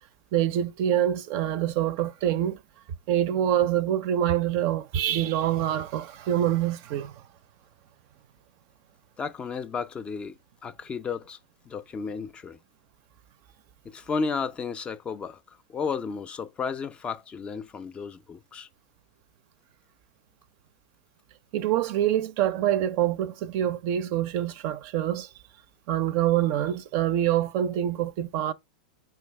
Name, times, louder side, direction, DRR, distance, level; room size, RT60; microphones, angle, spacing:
voice 1, 0.3-2.6 3.1-7.1 21.5-25.3 25.9-28.5, right 11 dB, 50° right, 0.4 m, -25 dB
voice 2, 9.2-11.4 11.7-12.6 13.8-18.7, left 5 dB, 20° left, 0.4 m, -33 dB
4.7 x 3.2 x 3.2 m
hypercardioid pair, 115°, 5 cm